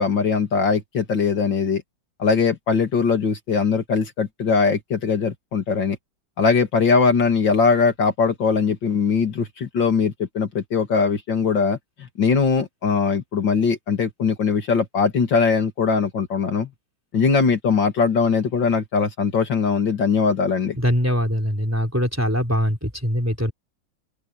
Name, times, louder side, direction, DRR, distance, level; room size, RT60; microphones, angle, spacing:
voice 1, 0.0-1.8 2.2-6.0 6.4-16.7 17.1-20.8, left 5 dB, 65° left, 2.9 m, -21 dB
voice 2, 20.8-23.5, equal, 5° right, 4.0 m, -22 dB
open air
omnidirectional pair, 2.2 m